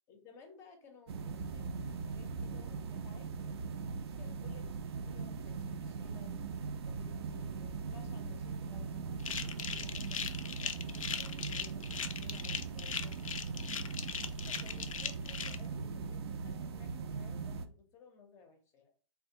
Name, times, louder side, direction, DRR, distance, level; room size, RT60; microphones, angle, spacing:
voice 1, 0.1-3.6 4.1-4.7 5.1-6.4 6.8-10.3 10.6-13.2 14.4-18.9, left 5 dB, 15° left, 5 dB, 0.5 m, -58 dB
sound 1, 1.1-17.7, right 5 dB, 50° right, 0.4 m, -40 dB
sound 2, 9.2-15.6, left 7 dB, 85° left, 0.4 m, -39 dB
3.3 x 2.3 x 2.7 m, 0.41 s
hypercardioid pair, 135°, 17 cm